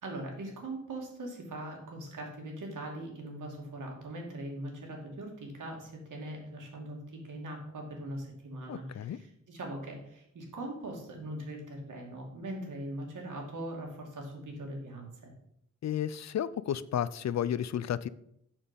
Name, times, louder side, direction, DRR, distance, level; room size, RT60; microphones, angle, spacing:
voice 1, 0.0-15.3, right 1 dB, 85° right, 0 dB, 2.4 m, -41 dB
voice 2, 8.7-9.2 15.8-18.1, left 10 dB, 65° left, 17 dB, 0.4 m, -32 dB
7.3 x 6.6 x 5.3 m, 0.73 s
wide cardioid pair, 155°, 30 cm